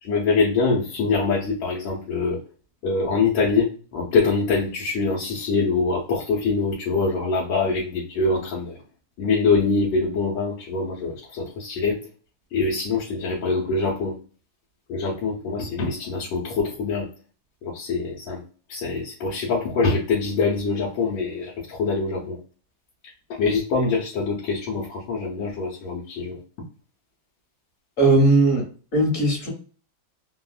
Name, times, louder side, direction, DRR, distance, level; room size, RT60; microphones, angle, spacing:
voice 1, 0.0-2.4 2.8-8.8 9.2-12.0 12.5-14.2 14.9-17.1 17.6-18.4 18.7-22.4 23.3-26.4, left 4 dB, 85° left, -5 dB, 1.5 m, -24 dB
voice 2, 28.0-28.6 28.9-29.5, right 2 dB, 40° left, -1 dB, 1.3 m, -18 dB
3.4 x 2.1 x 2.3 m, 0.38 s
omnidirectional pair, 2.1 m